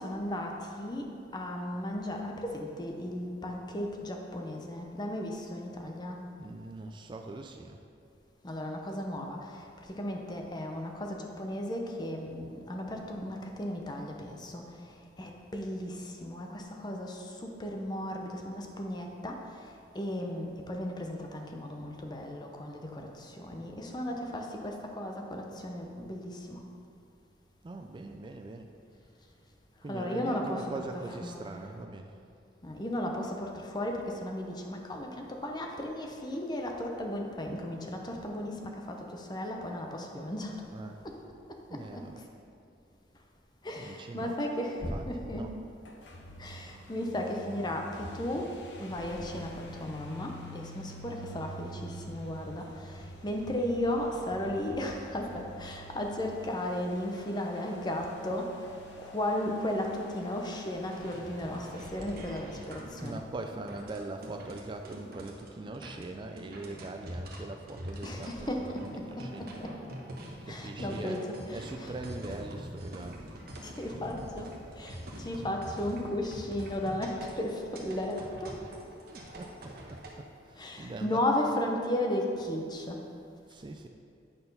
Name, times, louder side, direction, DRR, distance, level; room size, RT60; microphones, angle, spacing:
voice 1, 0.0-6.2 8.4-26.6 29.8-31.6 32.6-40.6 41.0-41.2 41.7-42.2 43.6-45.6 46.4-63.3 68.0-69.8 70.5-72.0 73.6-78.6 80.6-83.1, left 1 dB, 25° left, 2 dB, 0.7 m, -35 dB
voice 2, 6.4-7.8 27.6-28.7 29.8-32.2 40.7-41.0 41.7-42.2 43.8-44.3 44.8-45.5 63.0-69.5 70.4-73.2 79.1-81.2 83.5-83.9, right 2 dB, 25° right, 4 dB, 0.3 m, -42 dB
sound 1, 45.8-63.3, equal, 80° left, 0.8 m, -48 dB
sound 2, 60.9-80.1, equal, 55° right, 1.1 m, -44 dB
8.9 x 4.2 x 5.4 m, 2.4 s
head